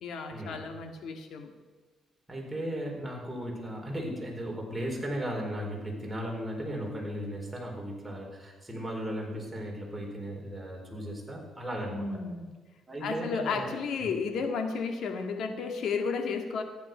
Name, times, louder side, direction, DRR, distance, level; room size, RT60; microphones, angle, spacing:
voice 1, 0.0-1.5 11.9-12.5 13.0-16.6, left 5 dB, 70° left, 5 dB, 1.9 m, -33 dB
voice 2, 2.3-12.1 12.9-13.7 14.0-14.1, equal, 10° right, -2 dB, 4.5 m, -36 dB
14.5 x 10.0 x 5.6 m, 1.4 s
cardioid pair, 90°, 0 cm